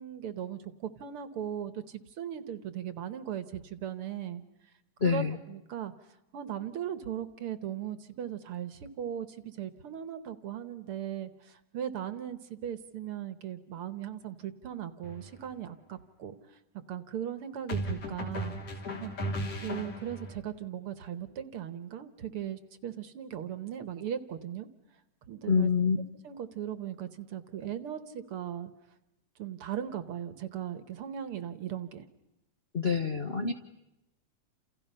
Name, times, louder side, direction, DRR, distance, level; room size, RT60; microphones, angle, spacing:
voice 1, 0.0-4.4 5.0-5.9 6.3-16.4 16.9-18.5 19.0-19.1 19.5-24.7 25.3-25.7 26.2-28.7 29.4-32.0, right 10 dB, 60° right, 12 dB, 1.8 m, -38 dB
voice 2, 5.0-5.4 25.5-26.0 32.7-33.5, left 6 dB, 75° left, 6 dB, 0.5 m, -26 dB
sound 1, 15.0-15.3 17.7-20.4, equal, 55° left, 4.1 m, -36 dB
29.5 x 28.5 x 5.6 m, 0.91 s
omnidirectional pair, 3.3 m